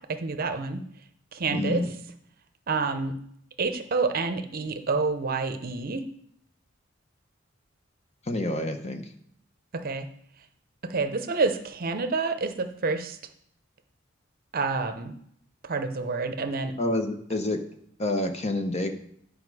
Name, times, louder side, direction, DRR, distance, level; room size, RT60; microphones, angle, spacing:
voice 1, 0.1-0.8 1.3-1.8 2.7-3.2 3.6-6.0 9.7-10.1 10.8-13.2 14.5-15.1 15.6-16.8, right 4 dB, 50° right, 8 dB, 0.7 m, -28 dB
voice 2, 1.5-1.9 8.3-9.0 16.8-17.6 18.0-18.9, left 1 dB, 35° left, 6 dB, 0.8 m, -28 dB
9.6 x 5.0 x 4.8 m, 0.68 s
head